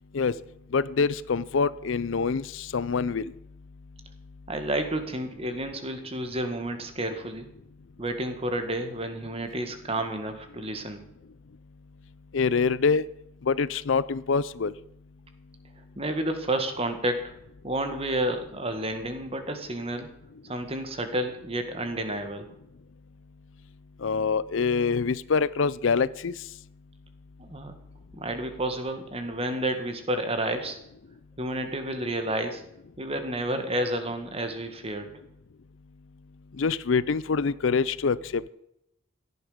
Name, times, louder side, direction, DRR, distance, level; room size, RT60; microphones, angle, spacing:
voice 1, 0.7-3.3 12.3-13.0 13.4-14.7 24.0-26.3 36.6-38.5, left 5 dB, 70° left, 19 dB, 0.5 m, -25 dB
voice 2, 4.5-7.5 8.0-11.0 16.0-17.2 17.6-20.1 20.4-22.4 27.4-27.7 28.1-30.8 31.4-32.6 33.0-35.1, right 1 dB, 30° right, 7 dB, 1.9 m, -30 dB
16.5 x 11.0 x 5.2 m, 0.80 s
head